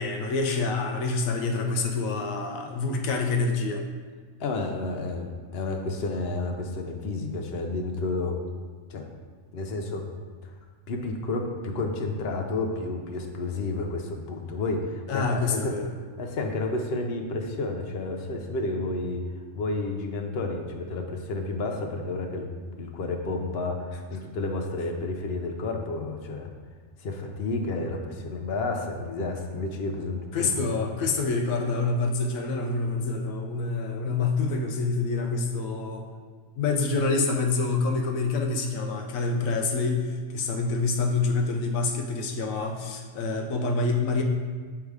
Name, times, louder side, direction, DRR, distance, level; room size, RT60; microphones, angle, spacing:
voice 1, 0.0-3.8 15.1-15.9 30.3-36.1 36.6-44.2, left 3 dB, 80° left, 3 dB, 1.1 m, -27 dB
voice 2, 4.4-8.4 8.9-9.1 9.5-10.1 10.9-15.8 16.2-19.2 19.5-22.5 22.8-26.5 27.0-30.6, left 2 dB, 55° left, 3 dB, 0.8 m, -31 dB
6.6 x 3.5 x 4.7 m, 1.5 s
omnidirectional pair, 1.4 m